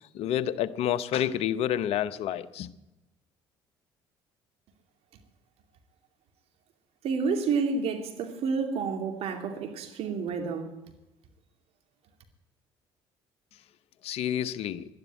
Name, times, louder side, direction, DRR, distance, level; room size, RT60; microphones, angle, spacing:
voice 1, 0.1-2.7 14.0-14.8, left 10 dB, 65° left, 0.8 m, -29 dB
voice 2, 7.0-10.7, right 5 dB, 65° right, 2.6 m, -29 dB
12.0 x 10.5 x 9.4 m
hypercardioid pair, 65°, 11 cm